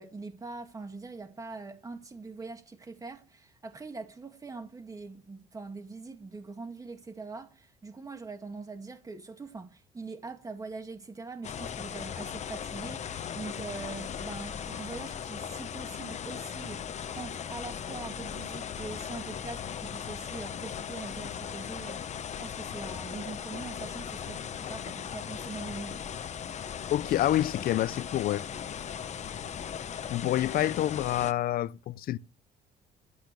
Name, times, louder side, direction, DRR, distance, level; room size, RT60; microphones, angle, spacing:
voice 1, 0.0-26.0, right 3 dB, 20° right, 2.1 m, -43 dB
sound 1, 11.4-31.3, left 8 dB, 45° left, 1.0 m, -38 dB
voice 2, 26.9-28.5 30.1-32.2, left 13 dB, 60° left, 0.6 m, -27 dB
12.5 x 8.4 x 8.3 m
cardioid pair, 110°, 17 cm